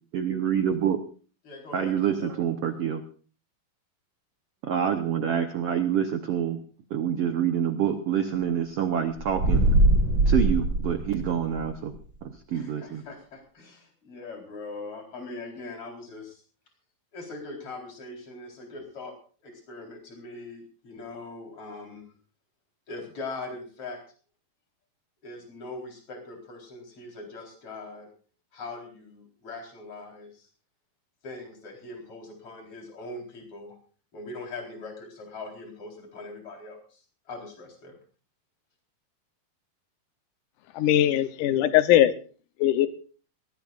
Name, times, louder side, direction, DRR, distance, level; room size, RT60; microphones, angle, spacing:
voice 1, 0.1-1.0 1.7-3.0 4.7-6.6 6.9-9.6 10.3-11.9 12.2-13.0, right 8 dB, 90° right, 7 dB, 1.3 m, -27 dB
voice 2, 1.4-2.3 12.5-16.4 17.1-19.2 19.4-22.1 22.9-24.0 25.2-28.1 28.5-30.5 31.2-33.8 34.1-37.0 37.3-37.9, left 3 dB, 35° left, 1 dB, 4.9 m, -41 dB
sound 1, 9.2-11.7, right 2 dB, 35° right, 5.2 m, -22 dB
voice 3, 40.8-42.1 42.6-42.9, left 12 dB, 70° left, 11 dB, 2.2 m, -20 dB
22.5 x 17.5 x 2.5 m, 0.40 s
omnidirectional pair, 4.3 m